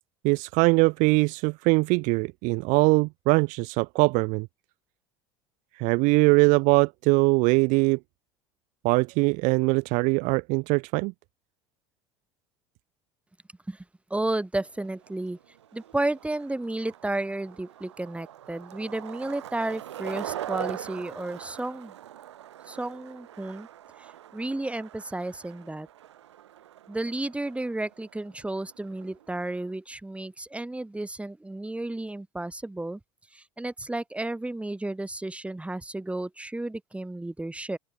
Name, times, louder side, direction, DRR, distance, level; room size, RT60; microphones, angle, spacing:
voice 1, 0.2-4.5 5.8-8.0 8.8-11.1, right 28 dB, 65° right, 0.7 m, -22 dB
voice 2, 14.1-15.4 15.7-21.9 22.7-23.7 24.0-25.9 26.9-33.0 33.3-37.8, right 2 dB, 10° right, 4.5 m, -32 dB
Skateboard, 14.6-29.7, right 12 dB, 90° right, 2.2 m, -42 dB
open air
hypercardioid pair, 80°, 14 cm